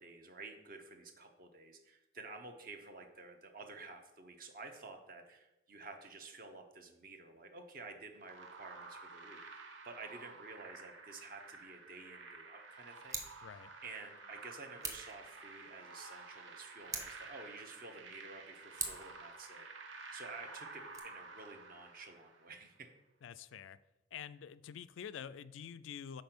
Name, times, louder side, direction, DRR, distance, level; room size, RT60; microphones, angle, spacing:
voice 1, 0.0-13.4 13.8-19.8 20.1-22.9, right 3 dB, 50° right, 5 dB, 0.9 m, -51 dB
sound 1, 8.2-22.6, right 3 dB, 85° right, 0.8 m, -52 dB
Scissors, 13.0-13.4 14.8-15.2 16.8-17.3 18.8-19.2 20.8-21.0, right 3 dB, 20° right, 0.8 m, -42 dB
voice 2, 23.2-23.8 24.1-26.2, left 8 dB, 85° left, 16 dB, 0.3 m, -47 dB
5.3 x 4.4 x 6.0 m, 0.93 s
head